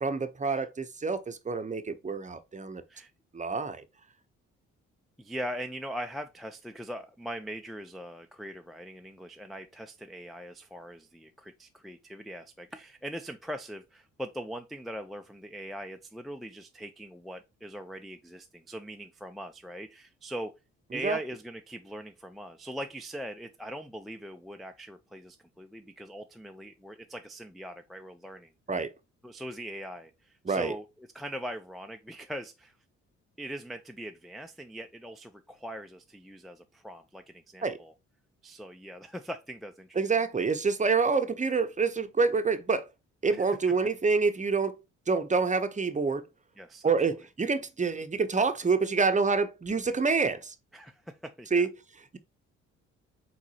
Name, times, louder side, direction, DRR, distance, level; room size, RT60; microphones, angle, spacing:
voice 1, 0.0-2.8 3.3-3.8 21.0-21.2 28.7-28.9 30.4-30.7 37.6-37.8 40.0-42.9 43.2-44.8 45.1-46.2 46.8-50.5 51.5-51.7, right 4 dB, 20° right, 0.7 m, -27 dB
voice 2, 5.2-20.5 20.9-28.5 29.2-32.7 33.4-37.9 38.4-40.0 43.3-43.5 46.6-47.1 50.7-51.7, equal, ahead, 0.4 m, -41 dB
4.6 x 3.9 x 2.8 m
hypercardioid pair, 50°, 34 cm